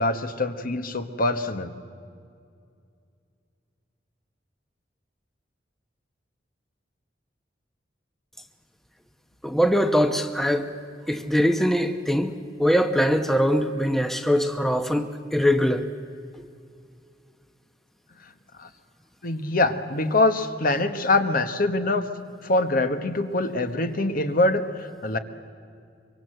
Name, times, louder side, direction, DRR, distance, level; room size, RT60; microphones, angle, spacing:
voice 1, 0.0-1.7 18.6-18.7 19.2-22.1 22.4-25.2, left 2 dB, 55° left, 9 dB, 1.4 m, -24 dB
voice 2, 9.4-10.7 11.1-15.8, equal, ahead, 7 dB, 0.9 m, -22 dB
24.5 x 24.0 x 7.9 m, 2.3 s
head